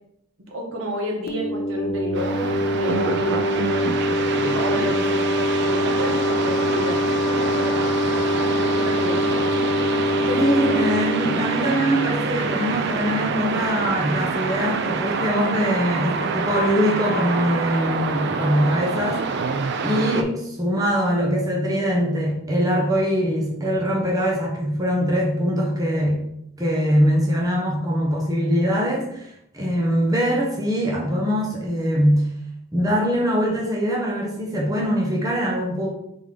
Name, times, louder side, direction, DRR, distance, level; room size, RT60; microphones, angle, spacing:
voice 1, 0.5-4.1 4.4-7.7 8.0-9.7 10.2-10.4, equal, 80° right, 0 dB, 1.0 m, -31 dB
sound 1, 1.3-12.7, left 1 dB, 50° left, 0.5 m, -24 dB
sound 2, 2.1-20.2, right 5 dB, 60° right, 0.4 m, -26 dB
voice 2, 10.4-19.4 19.8-26.2 26.6-29.3 29.5-32.3 32.7-35.9, equal, 20° right, -3 dB, 0.8 m, -22 dB
3.7 x 3.6 x 3.3 m, 0.77 s
head